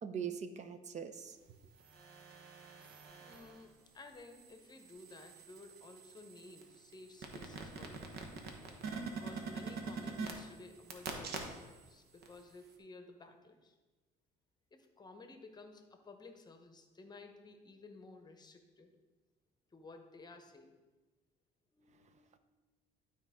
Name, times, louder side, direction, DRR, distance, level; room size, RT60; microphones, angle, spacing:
voice 1, 0.0-1.4, right 7 dB, 45° right, 9 dB, 0.6 m, -41 dB
sound 1, 1.6-3.6 4.1-11.9 12.2-12.3, right 4 dB, 70° right, 1.1 m, -45 dB
voice 2, 3.2-8.4 9.1-13.7 14.7-18.9 19.7-20.8 21.7-22.4, left 3 dB, 25° left, 6 dB, 0.9 m, -55 dB
12.0 x 4.4 x 3.6 m, 1.2 s
cardioid pair, 110°, 17 cm